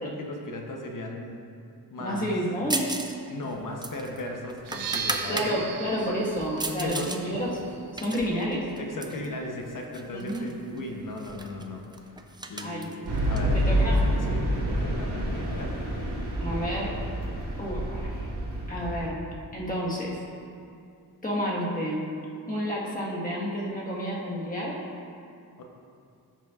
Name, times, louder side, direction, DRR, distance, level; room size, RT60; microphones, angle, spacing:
voice 1, 0.0-1.4 1.9-2.3 3.3-5.6 6.1-6.2 6.7-7.3 8.8-11.8 12.1-12.2 12.5-13.0 13.3-13.8 14.3-15.7 25.6-25.7, left 2 dB, 55° left, 1 dB, 0.8 m, -36 dB
voice 2, 2.0-2.8 5.3-7.7 7.9-8.7 10.1-10.5 12.6-12.9 13.5-14.1 16.4-16.9 17.6-18.3 18.7-19.2 19.5-20.2 21.2-22.1 22.5-24.8, equal, 20° left, -5 dB, 1.4 m, -30 dB
sound 1, 2.7-3.2 3.4-5.5 6.0-7.2 7.6-9.3 9.9-10.5 10.8-10.9 11.2-14.3, right 2 dB, 10° right, 0.3 m, -35 dB
sound 2, 4.6-12.3, right 6 dB, 65° right, 0.6 m, -41 dB
sound 3, 13.1-19.1, equal, 90° right, 1.8 m, -28 dB
13.5 x 5.8 x 2.4 m, 2.5 s
wide cardioid pair, 160°, 38 cm